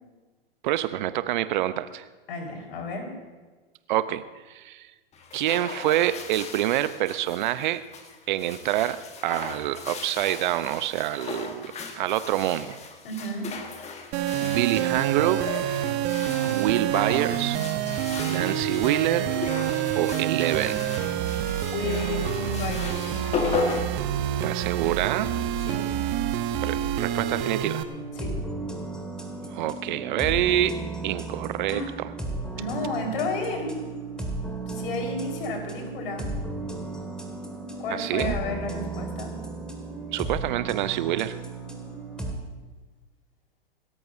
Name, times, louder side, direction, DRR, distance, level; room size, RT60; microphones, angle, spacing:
voice 1, 0.6-2.0 3.9-4.9 5.3-7.8 8.3-12.8 14.4-15.5 16.5-17.6 18.2-19.3 19.9-20.9 24.4-25.3 26.6-27.8 29.5-30.8 31.0-32.1 37.9-38.4 40.1-41.4, right 13 dB, 50° right, 14 dB, 0.8 m, -26 dB
voice 2, 2.3-3.1 13.0-13.5 21.7-23.2 25.7-25.9 28.1-28.3 31.7-31.9 32.5-33.8 34.7-36.3 37.8-39.3, left 2 dB, 60° left, 2 dB, 4.6 m, -32 dB
sound 1, 5.1-24.7, left 4 dB, 20° left, 1.6 m, -36 dB
sound 2, 14.1-27.8, right 10 dB, 35° right, 1.1 m, -27 dB
sound 3, 27.8-42.3, right 3 dB, 5° left, 2.0 m, -35 dB
27.5 x 13.5 x 2.7 m, 1.3 s
hypercardioid pair, 105°, 31 cm